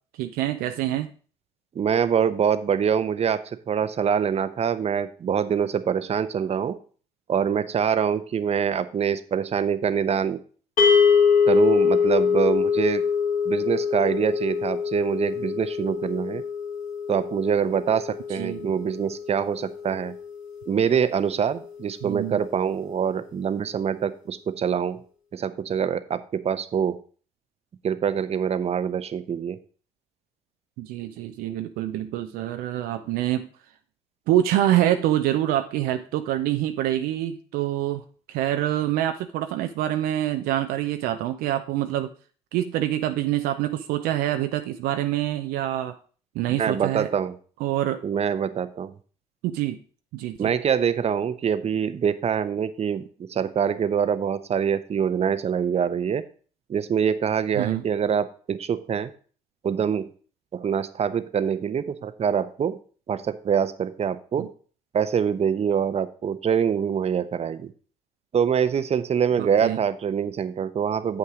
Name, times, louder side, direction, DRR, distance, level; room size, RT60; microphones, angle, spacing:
voice 1, 0.2-1.1 18.4-18.7 22.0-22.4 30.8-33.5 34.3-38.0 38.3-42.1 42.5-46.0 46.3-47.1 47.6-48.0 49.4-49.8 50.1-50.5 57.6-57.8 64.4-64.5 69.4-69.8, right 13 dB, 70° right, 8 dB, 0.6 m, -26 dB
voice 2, 1.7-6.8 7.3-10.4 11.5-13.0 13.5-16.4 17.1-20.2 20.7-25.0 25.3-27.0 27.8-29.6 46.5-47.3 48.0-48.9 50.4-53.0 53.3-56.2 56.7-59.1 59.6-60.1 60.5-62.8 63.1-64.5 64.9-67.7 68.3-71.2, right 7 dB, 40° right, 13 dB, 0.8 m, -25 dB
sound 1, 10.8-21.1, left 6 dB, 55° left, 2.3 m, -24 dB
7.8 x 5.8 x 4.9 m, 0.41 s
hypercardioid pair, 55°, 16 cm